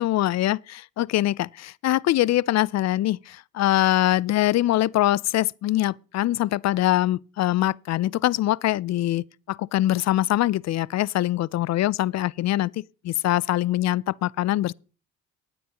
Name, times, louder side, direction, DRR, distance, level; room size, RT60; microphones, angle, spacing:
voice 1, 0.0-14.7, left 14 dB, 50° left, 0.4 m, -23 dB
19.0 x 8.0 x 2.9 m
supercardioid pair, 60°, 34 cm